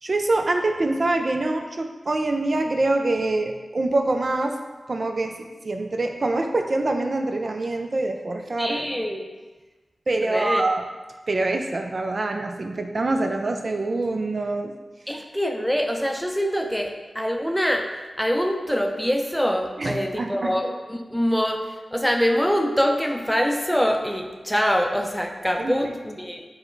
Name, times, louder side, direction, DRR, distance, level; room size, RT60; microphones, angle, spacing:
voice 1, 0.0-4.5 4.9-8.9 10.1-10.8 11.3-14.7 19.8-20.6 25.6-25.8, right 2 dB, 55° right, 5 dB, 0.4 m, -25 dB
voice 2, 8.6-9.2 10.2-10.6 15.1-17.9 18.2-21.6 21.9-26.5, equal, 5° left, 4 dB, 0.5 m, -24 dB
4.9 x 2.2 x 4.5 m, 1.3 s
cardioid pair, 40°, 0 cm